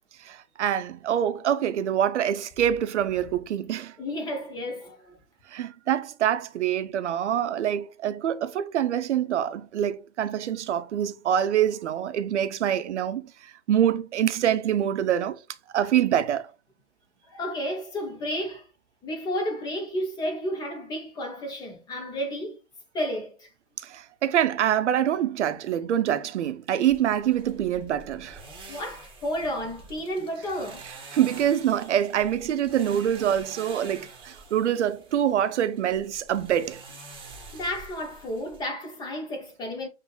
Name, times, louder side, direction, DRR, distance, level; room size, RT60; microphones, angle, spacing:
voice 1, 0.2-4.0 5.5-15.4 15.7-16.5 23.8-28.4 31.1-36.8, right 10 dB, 70° right, 0.6 m, -25 dB
voice 2, 4.0-5.2 17.3-18.7 19.0-22.6 22.9-23.5 28.7-30.9 37.5-39.9, equal, 10° left, 0.4 m, -32 dB
sound 1, 26.9-38.6, right 3 dB, 15° right, 1.1 m, -47 dB
6.9 x 2.6 x 2.3 m
hypercardioid pair, 120°, 37 cm